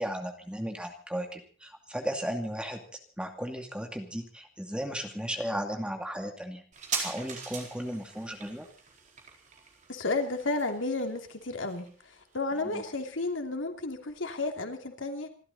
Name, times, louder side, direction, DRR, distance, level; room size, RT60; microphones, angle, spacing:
voice 1, 0.0-2.8 3.2-6.6 7.0-8.7 12.6-12.8, equal, 5° right, 4 dB, 2.4 m, -35 dB
sound 1, 6.7-13.8 14.1-14.2, right 5 dB, 40° right, 4.3 m, -41 dB
voice 2, 9.9-11.9 12.3-15.3, left 3 dB, 80° left, 5 dB, 2.8 m, -32 dB
27.0 x 13.0 x 4.1 m, 0.40 s
head